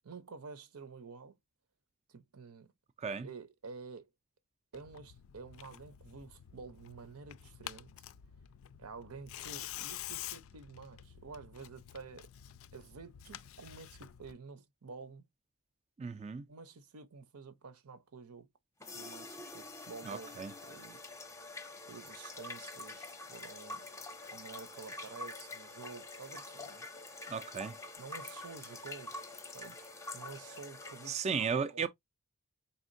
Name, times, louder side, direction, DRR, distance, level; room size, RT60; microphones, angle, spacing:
voice 1, 0.0-1.4 2.1-2.7 3.2-4.1 4.7-8.0 8.8-12.3 12.7-15.3 16.5-18.5 18.9-21.0 21.8-23.9 24.3-26.9 28.0-31.9, right 4 dB, 90° right, 0.8 m, -50 dB
Tearing, 4.7-14.3, left 12 dB, 65° left, 0.3 m, -48 dB
voice 2, 16.0-16.4 20.1-20.5 27.3-27.7 31.1-31.9, right 6 dB, 30° right, 0.3 m, -35 dB
sound 1, 18.8-31.2, left 2 dB, 15° left, 0.6 m, -46 dB
4.2 x 3.6 x 2.5 m
head